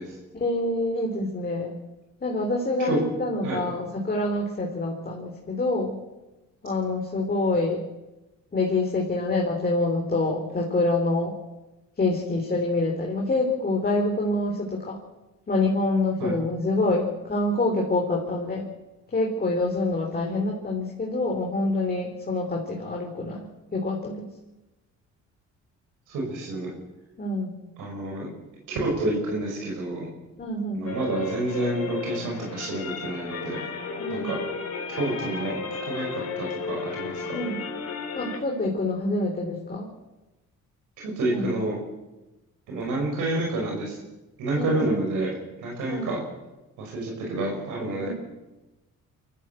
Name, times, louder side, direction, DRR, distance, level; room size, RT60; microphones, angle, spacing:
voice 1, 0.3-1.7 2.2-6.0 6.6-7.8 8.5-11.4 12.0-15.0 15.5-18.7 19.1-24.3 27.2-27.6 30.4-30.9 34.0-34.4 37.3-37.6 38.1-39.9 41.3-41.6 44.6-45.0 45.9-46.1 48.0-48.1, left 2 dB, 30° left, -1 dB, 3.7 m, -26 dB
voice 2, 26.1-26.7 27.8-28.3 28.7-30.1 30.7-33.6 34.1-34.4 34.9-35.6 35.8-37.4 41.0-41.8 42.7-44.0 44.4-46.2 46.8-48.1, right 2 dB, 85° right, -1 dB, 5.7 m, -29 dB
sound 1, 30.9-38.4, left 4 dB, 55° left, 4.2 m, -34 dB
24.0 x 14.0 x 7.8 m, 1.0 s
cardioid pair, 90°, 30 cm